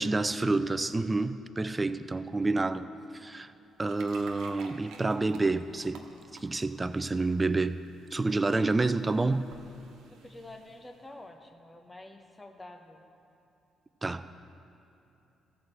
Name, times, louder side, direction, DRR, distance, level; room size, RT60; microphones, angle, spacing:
voice 1, 0.0-3.5 3.8-6.0 6.4-7.8 8.1-9.5 14.0-14.3, right 3 dB, 20° right, 12 dB, 0.4 m, -28 dB
sound 1, 3.5-11.1, right 4 dB, 85° right, 1.0 m, -53 dB
voice 2, 10.1-13.0, left 2 dB, 15° left, 5 dB, 1.0 m, -48 dB
13.5 x 4.8 x 7.5 m, 2.9 s
cardioid pair, 90°, 0 cm